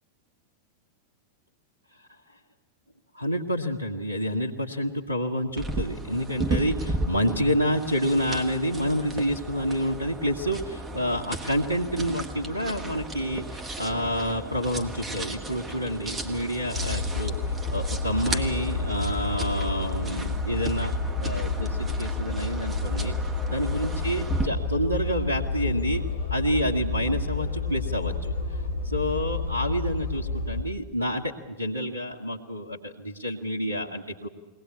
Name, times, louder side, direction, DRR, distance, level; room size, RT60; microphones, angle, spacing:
voice 1, 3.1-20.9 21.2-23.1 23.5-26.0 26.3-34.3, equal, 85° right, -2 dB, 1.5 m, -28 dB
sound 1, 5.6-24.5, right 1 dB, 10° right, 2.0 m, -35 dB
sound 2, 16.7-30.6, left 3 dB, 70° left, 3.2 m, -30 dB
22.0 x 18.0 x 9.6 m, 1.3 s
figure-of-eight pair, 90°, 0 cm